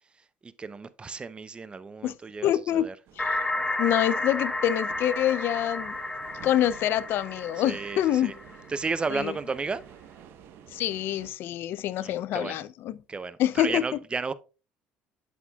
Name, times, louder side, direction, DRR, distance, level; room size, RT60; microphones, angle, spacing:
voice 1, 0.4-3.0 7.6-8.3 8.7-9.8 12.0-12.6 13.1-14.3, right 4 dB, 25° right, 0.5 m, -33 dB
voice 2, 2.4-2.9 3.2-3.4 3.8-5.9 6.4-8.3 9.1-9.3 10.7-13.0 13.4-13.8, left 12 dB, 60° left, 0.4 m, -26 dB
sound 1, 3.1-11.3, right 9 dB, 65° right, 1.0 m, -51 dB
sound 2, 3.2-8.9, left 2 dB, 15° left, 1.1 m, -32 dB
8.1 x 7.2 x 2.3 m
supercardioid pair, 80°, 4 cm